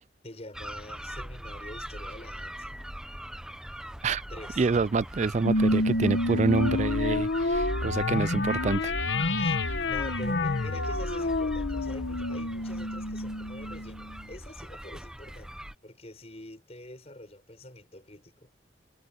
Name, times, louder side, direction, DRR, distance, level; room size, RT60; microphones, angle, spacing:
voice 1, 0.2-2.8 4.3-4.7 9.4-9.6 9.9-15.6 15.8-18.5, left 1 dB, 35° left, 6.5 m, -45 dB
sound 1, 0.5-15.7, equal, 5° right, 0.7 m, -41 dB
voice 2, 4.6-8.9, right 4 dB, 40° right, 0.4 m, -27 dB
sound 2, 5.4-14.2, left 2 dB, 75° left, 1.2 m, -28 dB
head